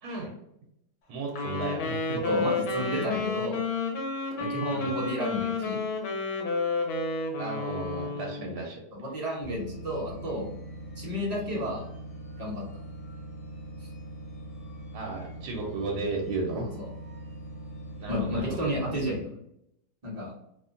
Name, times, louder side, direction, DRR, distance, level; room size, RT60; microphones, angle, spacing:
voice 1, 1.1-2.2 2.9-3.1 4.7-4.9 7.4-8.8 14.9-16.7 18.0-18.7, right 3 dB, 75° right, -1 dB, 1.1 m, -34 dB
Wind instrument woodwind instrument, 1.3-8.5, left 3 dB, 90° left, 1.3 m, -30 dB
voice 2, 2.2-3.7 4.4-5.8 8.4-8.5 8.9-10.4 11.0-11.8 12.4-12.6 16.8-16.9 18.1-19.3 20.0-20.3, equal, 40° right, -5 dB, 0.6 m, -32 dB
sound 1, 9.4-19.2, right 1 dB, 60° left, 1.5 m, -42 dB
2.9 x 2.1 x 2.5 m, 0.78 s
omnidirectional pair, 1.8 m